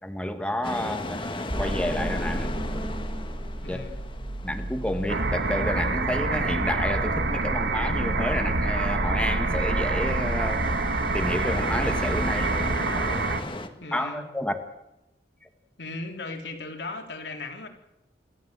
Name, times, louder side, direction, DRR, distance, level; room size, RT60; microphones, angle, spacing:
voice 1, 0.0-2.5 3.7-3.8 4.4-10.7 11.1-12.5 13.9-14.6, left 1 dB, 5° left, 6 dB, 1.6 m, -30 dB
sound 1, 0.6-13.7, left 2 dB, 30° left, 1.8 m, -38 dB
sound 2, 1.5-12.8, right 1 dB, 30° right, 1.6 m, -33 dB
voice 2, 3.6-4.0 13.8-14.2 15.8-17.7, left 3 dB, 75° left, 4 dB, 3.5 m, -37 dB
sound 3, 5.1-13.4, right 3 dB, 65° right, 1.6 m, -27 dB
28.0 x 13.0 x 7.7 m, 0.90 s
head